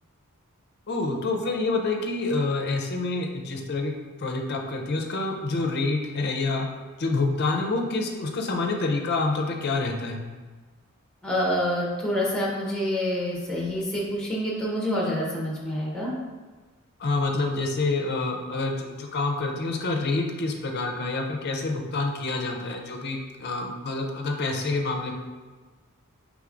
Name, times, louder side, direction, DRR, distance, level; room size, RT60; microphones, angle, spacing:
voice 1, 0.9-3.9 4.2-6.7 7.0-10.2 17.0-25.1, left 3 dB, 45° left, 2 dB, 0.5 m, -27 dB
voice 2, 11.2-16.1, equal, 5° left, -4 dB, 0.8 m, -27 dB
4.7 x 3.5 x 2.5 m, 1.4 s
head